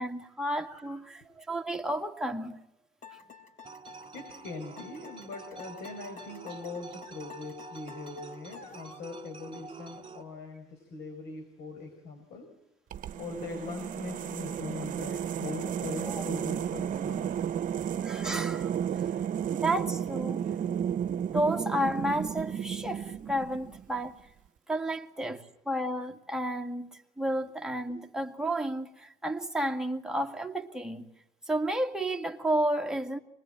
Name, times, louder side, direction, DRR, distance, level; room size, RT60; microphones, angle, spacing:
voice 1, 0.0-2.6 16.1-16.2 18.0-18.8 19.5-20.4 21.1-24.2 24.7-31.1 31.5-33.2, right 1 dB, 5° right, 2.1 m, -32 dB
sound 1, 3.0-9.1, left 6 dB, 45° left, 4.0 m, -50 dB
sound 2, 3.6-10.2, right 4 dB, 30° right, 2.5 m, -48 dB
voice 2, 4.1-12.5 13.2-17.3, left 3 dB, 80° left, 5.3 m, -41 dB
sound 3, 12.9-24.0, right 9 dB, 50° right, 1.0 m, -33 dB
24.5 x 21.5 x 9.0 m
cardioid pair, 110°, 17 cm